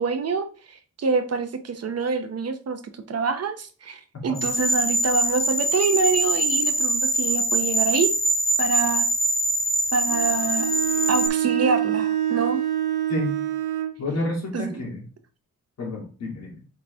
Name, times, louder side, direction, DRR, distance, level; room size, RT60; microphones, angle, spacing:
voice 1, 0.0-2.8 3.1-8.1 8.6-9.1 9.9-10.7 11.1-12.6 14.5-14.8, right 5 dB, 55° right, 8 dB, 0.8 m, -26 dB
voice 2, 4.1-4.4 13.1-13.3 14.0-15.0 15.8-16.6, left 2 dB, 60° left, -2 dB, 2.7 m, -30 dB
sound 1, 4.4-11.3, right 1 dB, 10° left, 0.4 m, -23 dB
Bowed string instrument, 10.1-14.0, right 11 dB, 90° right, 0.8 m, -26 dB
8.3 x 3.3 x 3.4 m, 0.37 s
wide cardioid pair, 155°, 30 cm